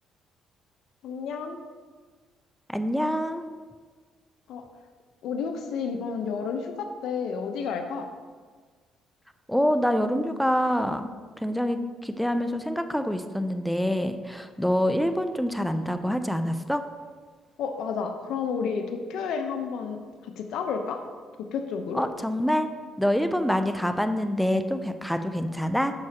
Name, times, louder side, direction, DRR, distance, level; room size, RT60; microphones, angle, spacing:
voice 1, 1.0-1.6 4.5-4.7 5.2-8.1 17.6-20.0 20.4-21.0 21.4-22.0, left 6 dB, 75° left, 5 dB, 0.8 m, -31 dB
voice 2, 2.7-3.4 9.5-16.8 21.9-22.7 23.0-25.9, equal, ahead, 8 dB, 0.6 m, -26 dB
10.5 x 6.1 x 2.9 m, 1.5 s
cardioid pair, 90°, 0 cm